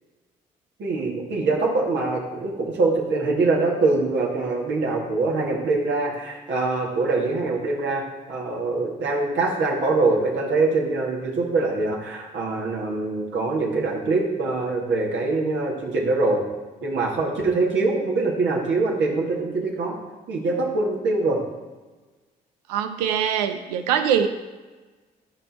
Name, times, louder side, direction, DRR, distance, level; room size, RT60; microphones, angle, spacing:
voice 1, 0.8-16.5 16.8-20.0 20.3-21.4, right 3 dB, 65° right, -2 dB, 2.0 m, -23 dB
voice 2, 22.7-24.3, right 8 dB, 90° right, 8 dB, 0.6 m, -23 dB
13.0 x 4.5 x 4.2 m, 1.3 s
hypercardioid pair, 45°, 20 cm